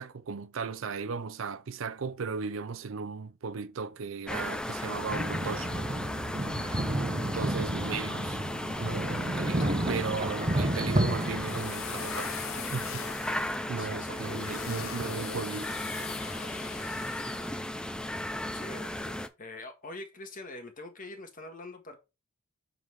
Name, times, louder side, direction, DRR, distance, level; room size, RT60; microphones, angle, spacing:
voice 1, 0.0-5.9 7.3-8.4 8.8-12.3 12.7-13.1 13.7-15.8, right 5 dB, 65° right, 0.5 m, -36 dB
sound 1, 4.3-19.3, left 1 dB, 5° left, 0.5 m, -36 dB
sound 2, 5.1-11.6, right 1 dB, 30° right, 0.9 m, -31 dB
sound 3, 10.7-17.6, left 7 dB, 70° left, 0.9 m, -42 dB
voice 2, 13.8-14.7 18.5-22.0, left 2 dB, 40° left, 1.7 m, -44 dB
7.2 x 3.9 x 4.7 m
head